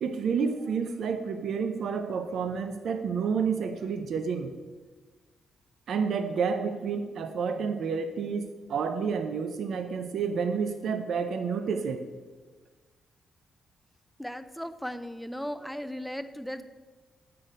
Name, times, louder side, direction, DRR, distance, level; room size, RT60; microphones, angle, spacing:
voice 1, 0.0-4.5 5.9-12.1, right 6 dB, 65° right, 8 dB, 0.5 m, -30 dB
voice 2, 14.2-16.6, equal, ahead, 11 dB, 0.3 m, -36 dB
8.0 x 5.8 x 5.0 m, 1.3 s
wide cardioid pair, 155°, 0 cm